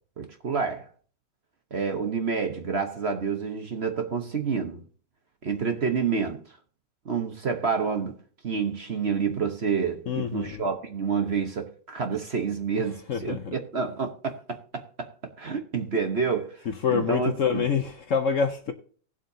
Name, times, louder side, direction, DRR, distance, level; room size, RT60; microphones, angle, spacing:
voice 1, 0.2-0.9 1.7-4.8 5.4-6.4 7.0-8.1 8.4-15.1 15.4-16.6 16.9-17.6, right 5 dB, 45° right, 1.1 m, -28 dB
voice 2, 10.1-10.6 12.7-12.8 13.1-13.5 16.7-18.7, left 6 dB, 55° left, 1.0 m, -26 dB
18.5 x 7.6 x 2.8 m
omnidirectional pair, 1.9 m